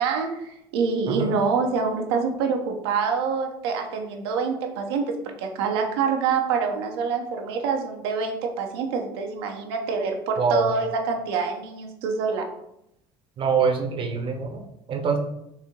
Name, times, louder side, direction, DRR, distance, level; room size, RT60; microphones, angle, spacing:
voice 1, 0.0-12.5, right 5 dB, 85° right, 3 dB, 0.7 m, -26 dB
voice 2, 10.4-10.7 13.4-14.6 14.9-15.2, right 5 dB, 45° right, 4 dB, 0.8 m, -24 dB
4.3 x 2.7 x 3.7 m, 0.79 s
supercardioid pair, 90°, 13 cm